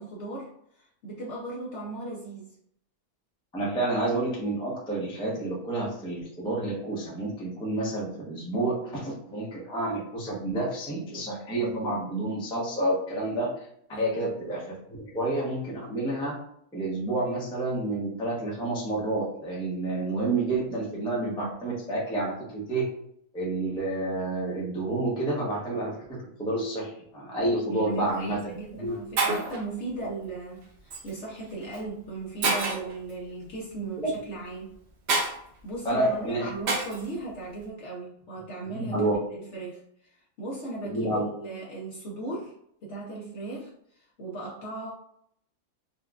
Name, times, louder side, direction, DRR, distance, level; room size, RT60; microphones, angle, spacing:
voice 1, 0.0-2.6 13.9-14.3 27.7-34.7 35.6-42.5 42.8-44.9, right 2 dB, 60° left, -4 dB, 0.8 m, -38 dB
voice 2, 3.5-13.7 14.0-16.4 16.7-22.8 23.3-29.0 34.0-34.1 35.8-36.5 38.7-39.2 40.8-41.2, right 2 dB, 5° left, -5 dB, 0.5 m, -29 dB
Shatter, 27.9-28.2 28.9-29.0 29.2-29.6 30.9-31.1 31.7-31.8 32.4-32.9 35.1-35.3 36.7-37.1, right 3 dB, 60° right, 0.7 m, -27 dB
4.3 x 2.3 x 2.3 m, 0.69 s
omnidirectional pair, 1.7 m